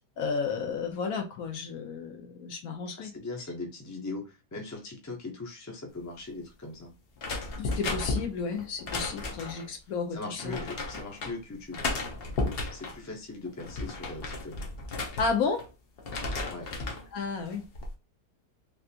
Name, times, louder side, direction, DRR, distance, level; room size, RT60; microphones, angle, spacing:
voice 1, 0.2-3.1 7.6-10.7 15.2-15.6 17.1-17.6, left 5 dB, 70° left, 5 dB, 1.1 m, -32 dB
voice 2, 3.0-6.9 10.1-11.8 12.7-14.6 16.5-16.7, left 3 dB, 20° left, 1 dB, 0.4 m, -40 dB
sound 1, 7.2-9.7 10.4-11.3 11.7-13.0 13.5-15.7 16.0-17.1 17.5-17.9, left 3 dB, 55° left, 0.7 m, -34 dB
3.5 x 2.4 x 2.7 m, 0.30 s
omnidirectional pair, 1.6 m